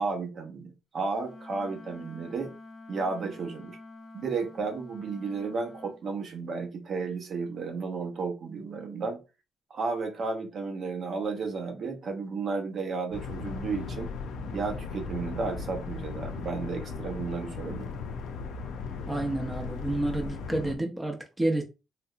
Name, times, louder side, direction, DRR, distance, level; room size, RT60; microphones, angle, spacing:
voice 1, 0.0-2.5 2.9-3.8 4.1-9.2 9.7-14.1 14.5-17.9, right 4 dB, 55° right, 0.8 m, -33 dB
Wind instrument woodwind instrument, 1.2-6.0, left 2 dB, 30° left, 0.6 m, -48 dB
sound 1, 13.1-20.8, left 4 dB, 85° left, 0.4 m, -37 dB
voice 2, 19.1-21.6, right 1 dB, 15° right, 0.6 m, -29 dB
3.3 x 2.7 x 2.4 m
cardioid pair, 90°, 0 cm